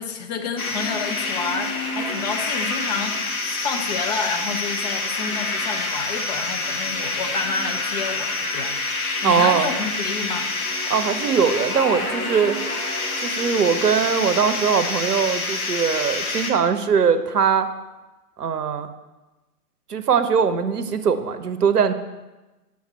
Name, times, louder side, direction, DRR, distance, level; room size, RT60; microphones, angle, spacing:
voice 1, 0.0-8.8 9.2-10.5, left 5 dB, 25° left, 4 dB, 0.6 m, -29 dB
sound 1, 0.6-16.5, left 2 dB, 65° left, 1.3 m, -27 dB
voice 2, 9.2-9.7 10.9-12.6 13.2-17.7 18.4-18.9 19.9-21.9, right 6 dB, 75° right, 9 dB, 0.7 m, -21 dB
7.2 x 6.0 x 4.3 m, 1.1 s
figure-of-eight pair, 110°, 47 cm